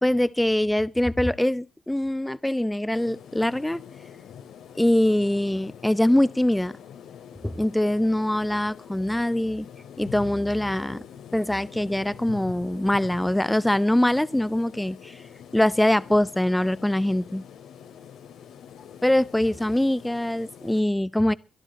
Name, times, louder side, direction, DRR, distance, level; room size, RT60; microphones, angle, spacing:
voice 1, 0.0-3.8 4.8-6.7 7.4-9.7 10.0-11.0 11.3-15.2 15.5-17.4 19.0-21.3, left 1 dB, 5° left, 0.7 m, -23 dB
sound 1, 2.9-20.8, left 8 dB, 80° left, 3.2 m, -45 dB
22.0 x 11.5 x 4.2 m
cardioid pair, 90°, 0 cm